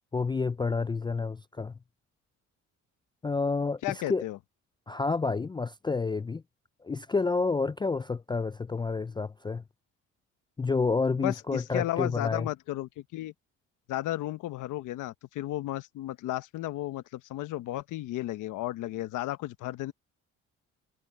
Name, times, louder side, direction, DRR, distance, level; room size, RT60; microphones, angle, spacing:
voice 1, 0.1-1.7 3.2-4.2 4.9-6.4 6.8-9.6 10.6-12.5, left 4 dB, 15° left, 0.3 m, -29 dB
voice 2, 3.8-4.4 11.2-13.3 13.9-19.9, left 15 dB, 90° left, 1.1 m, -34 dB
cardioid pair, 90°, 30 cm